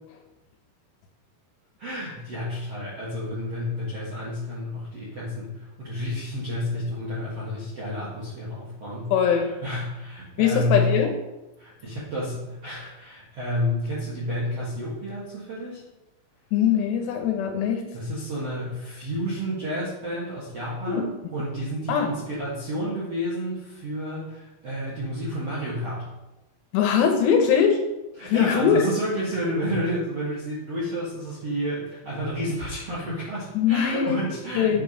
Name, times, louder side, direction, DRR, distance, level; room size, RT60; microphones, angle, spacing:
voice 1, 1.8-10.9 11.6-15.8 17.9-26.1 28.2-34.8, equal, 55° right, -8 dB, 1.7 m, -30 dB
voice 2, 9.1-9.5 10.4-11.1 16.5-17.8 20.9-21.0 21.9-22.1 26.7-27.8 28.2-28.8 33.5-34.2 34.5-34.8, left 8 dB, 75° left, 4 dB, 2.8 m, -21 dB
8.4 x 4.6 x 5.4 m, 1.0 s
omnidirectional pair, 5.4 m